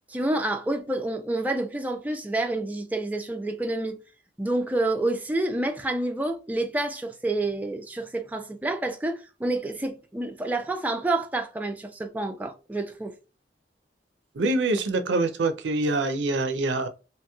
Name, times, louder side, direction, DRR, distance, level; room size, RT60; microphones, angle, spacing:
voice 1, 0.1-4.0 4.4-13.1, right 2 dB, 10° right, 0.3 m, -28 dB
voice 2, 14.3-16.9, right 2 dB, 75° right, 0.5 m, -25 dB
2.9 x 2.9 x 2.2 m
head